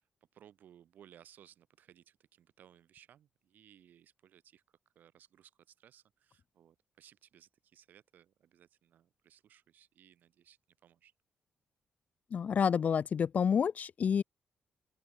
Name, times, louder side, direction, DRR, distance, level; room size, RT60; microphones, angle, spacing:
voice 1, 0.3-4.6 5.0-11.1, right 10 dB, 75° right, 5.4 m, -61 dB
voice 2, 12.3-14.2, left 7 dB, 55° left, 0.5 m, -29 dB
open air
cardioid pair, 65°, 3 cm